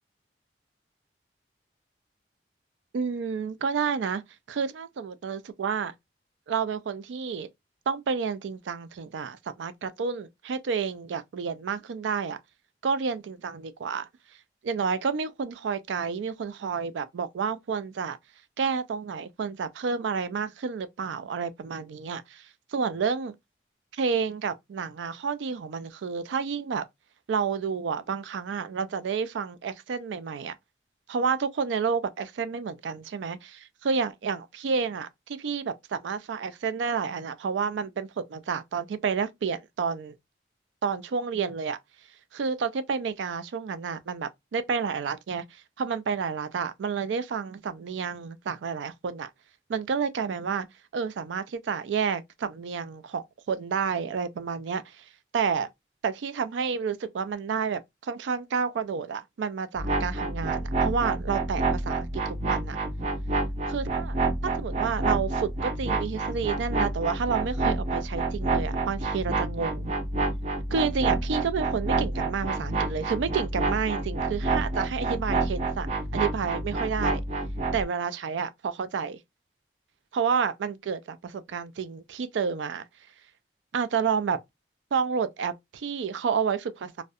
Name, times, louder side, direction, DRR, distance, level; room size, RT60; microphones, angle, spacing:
voice 1, 2.9-4.2 4.5-5.9 6.5-7.5 7.9-12.4 12.8-14.1 14.6-18.2 18.6-22.4 22.7-23.3 23.9-26.9 27.3-30.5 31.1-40.1 40.8-41.8 42.3-45.4 45.8-49.3 49.7-50.7 50.9-55.0 55.3-55.7 56.0-62.8 63.7-64.2 64.4-69.9 70.7-75.9 76.1-77.2 77.7-79.2 80.1-82.8 83.7-84.4 84.9-87.0, right 6 dB, 90° right, 0.4 m, -30 dB
sound 1, 59.8-77.8, right 3 dB, 35° right, 0.5 m, -28 dB
2.4 x 2.1 x 2.5 m
head